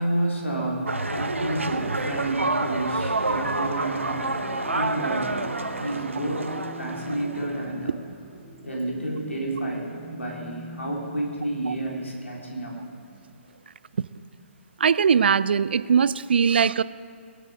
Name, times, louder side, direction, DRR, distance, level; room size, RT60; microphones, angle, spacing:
voice 1, 0.0-4.4 4.7-5.4 5.8-8.0 8.6-12.7, right 1 dB, 75° left, -2 dB, 3.7 m, -30 dB
sound 1, 0.9-7.7, right 2 dB, 75° right, 0.8 m, -29 dB
sound 2, 2.8-13.3, right 1 dB, ahead, 4.0 m, -42 dB
voice 2, 14.8-16.8, right 6 dB, 55° right, 18 dB, 0.4 m, -20 dB
21.0 x 9.0 x 5.0 m, 2.3 s
figure-of-eight pair, 130°, 7 cm